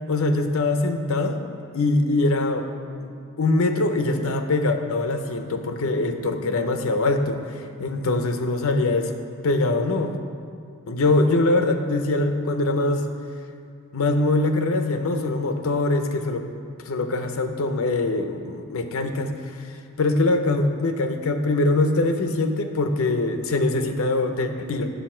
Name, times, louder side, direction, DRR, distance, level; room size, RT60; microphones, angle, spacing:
voice 1, 0.1-1.4 1.7-2.7 3.0-9.1 9.4-10.2 10.9-13.1 13.9-16.5 16.8-19.3 19.6-24.9, left 2 dB, 70° left, 6 dB, 0.6 m, -23 dB
9.3 x 6.8 x 4.4 m, 2.3 s
head